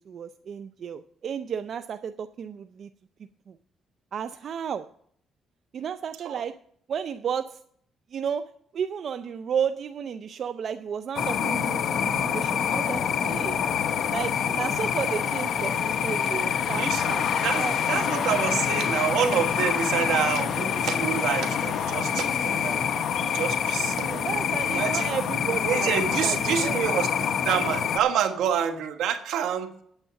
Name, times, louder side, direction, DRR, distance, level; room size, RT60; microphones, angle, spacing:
voice 1, 0.0-2.9 3.5-3.6 4.1-4.9 5.7-6.6 6.9-7.6 8.1-13.6 14.1-17.2 17.6-17.8 18.9-19.0 24.2-27.0, right 7 dB, 60° right, 10 dB, 0.5 m, -33 dB
sound 1, 11.2-28.0, left 8 dB, 65° left, 0.9 m, -26 dB
voice 2, 16.7-17.0 17.4-22.8 23.2-24.2 24.7-25.1 25.6-29.7, right 8 dB, 85° right, 7 dB, 1.3 m, -27 dB
8.9 x 8.9 x 5.8 m, 0.65 s
cardioid pair, 90°, 0 cm